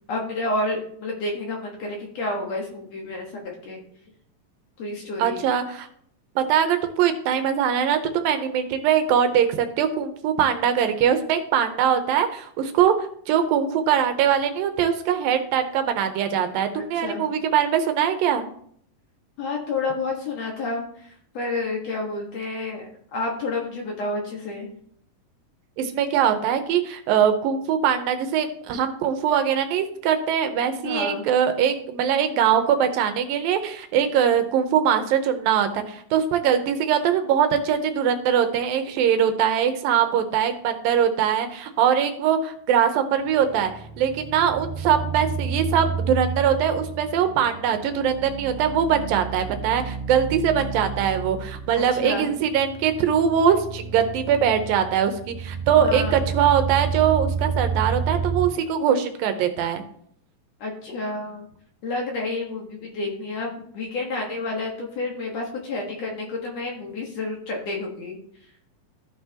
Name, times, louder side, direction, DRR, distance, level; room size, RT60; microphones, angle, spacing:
voice 1, 0.1-3.8 4.8-5.5 16.7-17.2 19.4-24.7 30.8-31.2 51.8-52.3 55.8-56.2 60.6-61.5 61.8-68.2, left 2 dB, 55° left, 0 dB, 2.4 m, -30 dB
voice 2, 5.2-5.9 6.4-18.4 25.8-43.7 44.0-59.8, right 8 dB, 80° right, 7 dB, 2.6 m, -22 dB
sound 1, 43.2-58.5, right 5 dB, 25° right, 1.9 m, -31 dB
14.5 x 5.8 x 2.9 m, 0.63 s
omnidirectional pair, 4.0 m